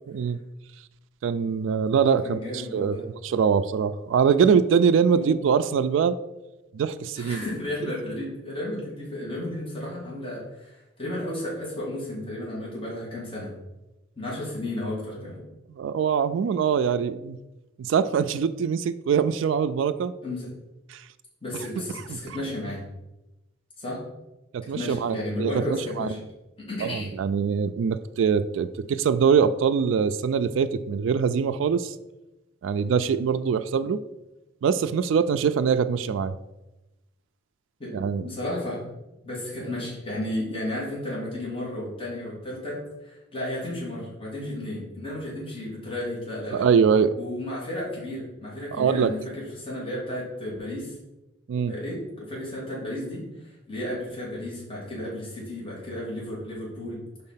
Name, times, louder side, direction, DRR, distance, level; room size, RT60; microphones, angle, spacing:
voice 1, 0.1-0.4 1.2-2.9 3.2-6.2 6.7-7.4 15.8-17.4 17.8-20.1 20.9-21.0 22.1-22.2 24.5-25.5 26.0-26.1 26.8-31.9 32.6-34.0 34.6-36.3 37.9-38.2 46.5-47.1 48.7-49.1 51.5-51.7, right 6 dB, 75° right, 10 dB, 0.3 m, -23 dB
voice 2, 2.2-3.0 5.1-5.3 7.1-13.5 14.2-15.4 20.2-20.5 21.4-22.8 23.8-24.0 24.6-26.2 26.7-27.1 37.8-38.9 39.2-46.7 47.2-51.0 51.7-57.0, left 1 dB, 30° left, -7 dB, 2.2 m, -33 dB
5.3 x 4.1 x 5.6 m, 0.98 s
head